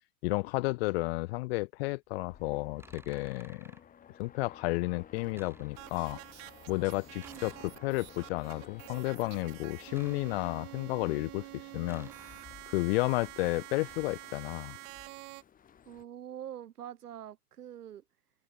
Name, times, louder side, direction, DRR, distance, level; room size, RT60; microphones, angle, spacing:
voice 1, 0.2-3.7 4.2-6.2 6.7-12.3 12.7-14.8, left 22 dB, 40° left, 0.6 m, -32 dB
sound 1, 2.0-2.3 2.8-3.8 5.3-6.1 7.2-8.0 9.9-10.9 11.9-12.8, right 2 dB, 5° right, 5.2 m, -57 dB
sound 2, 2.1-16.0, left 8 dB, 20° left, 1.9 m, -55 dB
sound 3, 5.7-15.4, right 38 dB, 35° right, 0.8 m, -48 dB
voice 2, 7.2-7.5 15.8-18.0, right 10 dB, 80° right, 3.4 m, -45 dB
hypercardioid pair, 120°, 46 cm